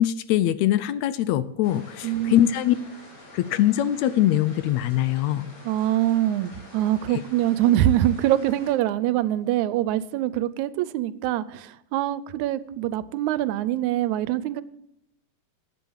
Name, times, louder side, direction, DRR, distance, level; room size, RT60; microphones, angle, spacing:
voice 1, 0.0-2.7 3.3-5.5, left 12 dB, 80° left, 15 dB, 1.8 m, -22 dB
sound 1, 1.6-8.7, left 2 dB, 40° left, 4.3 m, -47 dB
voice 2, 2.0-2.4 5.6-14.6, right 13 dB, 80° right, 16 dB, 1.9 m, -24 dB
10.5 x 8.4 x 7.2 m, 0.79 s
omnidirectional pair, 3.4 m